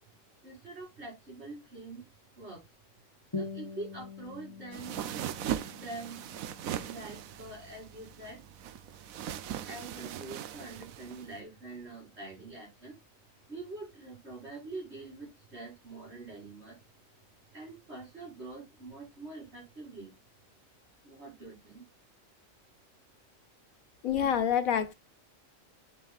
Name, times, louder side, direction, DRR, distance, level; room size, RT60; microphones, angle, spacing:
voice 1, 0.4-2.1 2.4-2.7 3.3-5.0 5.7-6.2 6.8-8.4 9.6-13.0 13.5-16.8 17.5-20.1 21.0-21.9, right 2 dB, 50° right, 6.0 m, -45 dB
sound 1, 3.3-8.3, left 4 dB, 20° left, 2.0 m, -44 dB
sound 2, 4.7-11.4, right 10 dB, 85° right, 1.1 m, -39 dB
voice 2, 24.0-24.9, left 8 dB, 85° left, 1.6 m, -27 dB
8.2 x 7.5 x 2.4 m
omnidirectional pair, 1.4 m